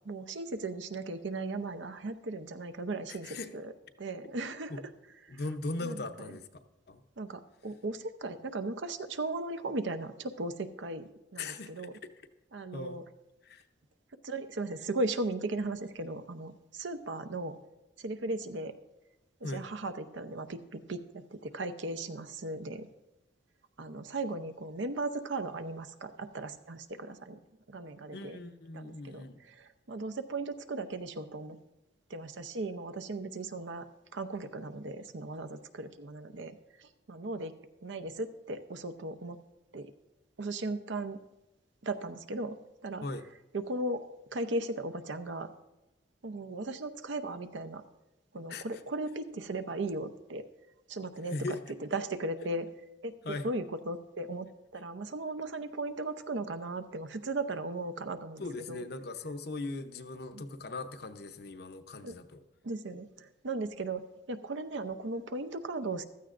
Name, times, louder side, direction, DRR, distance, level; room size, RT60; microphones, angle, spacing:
voice 1, 0.0-3.7 4.0-4.7 5.8-6.3 7.2-11.9 12.5-13.0 14.2-17.6 18.0-18.7 19.4-22.9 23.8-27.4 27.7-28.4 28.7-31.6 32.1-33.9 34.1-37.5 37.8-39.4 39.7-39.9 40.4-41.2 41.8-43.0 43.5-44.0 44.3-45.5 46.2-47.8 48.3-50.4 50.9-51.6 51.9-52.7 53.0-53.1 53.4-54.5 54.7-58.8 60.3-60.5 62.0-62.2 62.6-64.0 64.3-66.0, right 2 dB, 75° right, 10 dB, 0.7 m, -37 dB
voice 2, 3.1-3.5 4.7-4.8 5.3-6.5 6.9-7.0 11.4-12.1 12.7-13.0 13.4-13.6 19.4-19.6 28.1-29.4 43.0-43.3 48.5-48.8 51.3-51.6 53.2-53.5 58.4-62.4, left 2 dB, 55° left, 8 dB, 0.7 m, -39 dB
15.0 x 13.0 x 2.5 m, 0.95 s
head